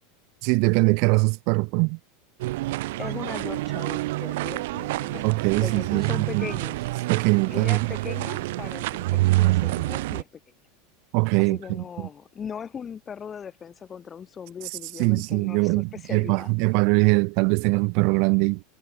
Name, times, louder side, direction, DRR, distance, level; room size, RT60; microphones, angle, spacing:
voice 1, 0.4-2.0 5.2-6.1 6.3-6.5 7.1-7.9 11.1-11.6 15.0-18.6, right 36 dB, 60° right, 0.3 m, -22 dB
sound 1, 2.4-10.2, right 19 dB, 75° right, 1.0 m, -27 dB
voice 2, 3.0-6.9 7.5-10.3 11.4-16.5, left 7 dB, 25° left, 7.0 m, -39 dB
supercardioid pair, 125°, 0 cm